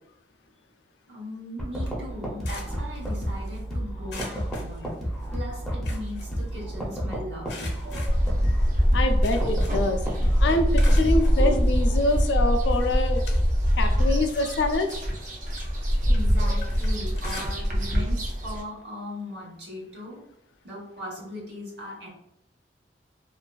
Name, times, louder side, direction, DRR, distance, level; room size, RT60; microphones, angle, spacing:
voice 1, 1.1-5.0 5.3-8.2 8.7-9.0 16.0-20.2 20.6-22.1, left 1 dB, 75° right, -3 dB, 1.0 m, -39 dB
sound 1, 1.6-12.0, equal, ahead, 0.5 m, -32 dB
sound 2, 2.1-3.6 4.1-5.4 5.7-7.0 7.5-10.0 10.3-11.4 12.1-12.2 12.7-13.8 14.1-17.9 18.2-18.5 18.8-18.9 20.1-20.2, left 3 dB, 65° left, 0.7 m, -44 dB
sound 3, 8.1-18.6, equal, 50° right, 0.5 m, -23 dB
voice 2, 8.9-10.0 10.4-13.2 13.8-15.0, left 2 dB, 85° left, 5 dB, 0.4 m, -25 dB
2.5 x 2.3 x 2.3 m, 0.83 s
head